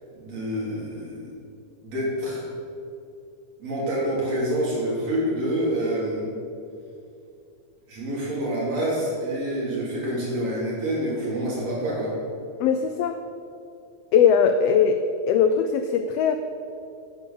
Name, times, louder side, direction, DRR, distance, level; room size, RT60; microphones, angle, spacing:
voice 1, 0.1-1.3 1.8-2.4 3.6-6.3 7.9-12.1, right 1 dB, 60° right, -6 dB, 4.9 m, -27 dB
voice 2, 12.6-13.2 14.1-15.0 15.3-16.4, left 7 dB, 85° left, 8 dB, 1.4 m, -20 dB
10.0 x 9.8 x 7.0 m, 2.7 s
omnidirectional pair, 3.4 m